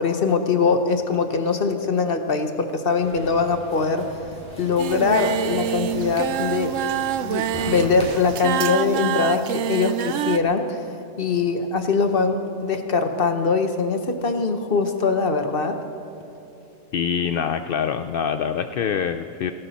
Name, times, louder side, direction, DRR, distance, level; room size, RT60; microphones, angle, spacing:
voice 1, 0.0-4.1 4.6-6.7 7.2-10.8 11.2-15.8, left 4 dB, 45° left, 7 dB, 1.0 m, -22 dB
sound 1, 3.0-8.0, equal, 5° left, 3.7 m, -39 dB
Singing, 4.8-10.4, right 10 dB, 70° right, 0.9 m, -26 dB
voice 2, 16.9-19.5, left 7 dB, 80° left, 9 dB, 0.5 m, -25 dB
17.5 x 17.5 x 4.2 m, 3.0 s
omnidirectional pair, 1.5 m